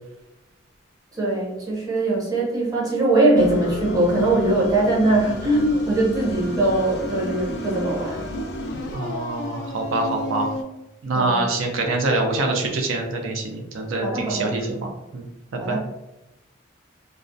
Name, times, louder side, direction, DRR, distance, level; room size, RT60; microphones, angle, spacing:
voice 1, 1.1-8.3 11.1-11.5 14.0-14.8 15.6-15.8, right 2 dB, 20° right, -5 dB, 0.6 m, -21 dB
sound 1, 3.4-10.6, left 2 dB, 60° left, 0.3 m, -31 dB
voice 2, 8.9-10.5 11.0-15.2 15.7-15.8, right 2 dB, 80° right, 1 dB, 0.4 m, -25 dB
2.3 x 2.1 x 2.5 m, 0.95 s
head